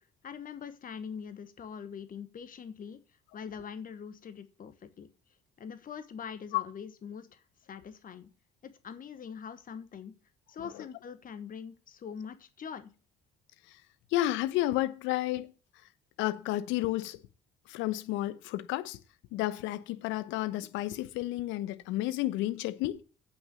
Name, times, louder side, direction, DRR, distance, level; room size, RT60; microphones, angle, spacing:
voice 1, 0.2-3.0 3.3-5.1 5.6-7.4 7.7-8.3 8.6-10.1 10.5-12.9, left 7 dB, 45° left, 1.2 m, -43 dB
voice 2, 14.1-15.5 16.2-17.2 17.7-19.0 19.3-23.0, left 15 dB, 70° left, 0.9 m, -31 dB
8.6 x 5.9 x 6.9 m
hypercardioid pair, 55°, 21 cm